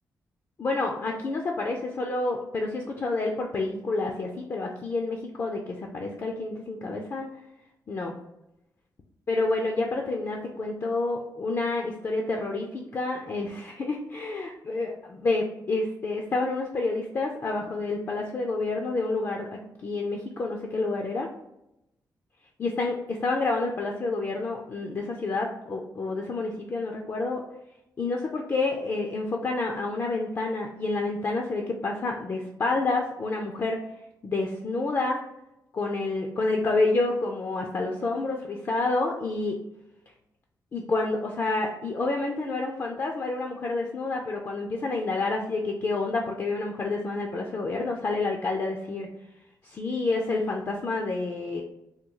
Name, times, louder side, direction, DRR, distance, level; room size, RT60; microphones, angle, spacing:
voice 1, 0.6-7.3 7.9-8.1 9.3-21.3 22.6-27.4 28.0-33.8 34.2-35.2 35.7-39.6 40.7-49.1 49.6-51.6, left 3 dB, 40° left, 1 dB, 0.4 m, -29 dB
3.5 x 2.3 x 3.0 m, 0.86 s
wide cardioid pair, 135°, 7 cm